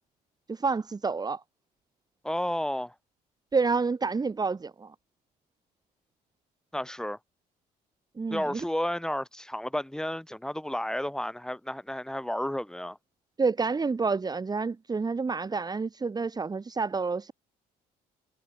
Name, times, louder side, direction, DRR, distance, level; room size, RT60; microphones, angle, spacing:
voice 1, 0.5-1.4 3.5-4.9 8.2-8.6 13.4-17.3, right 4 dB, 25° right, 2.7 m, -29 dB
voice 2, 2.2-2.9 6.7-7.2 8.3-13.0, left 1 dB, 5° left, 5.8 m, -32 dB
cardioid pair, 110°, 17 cm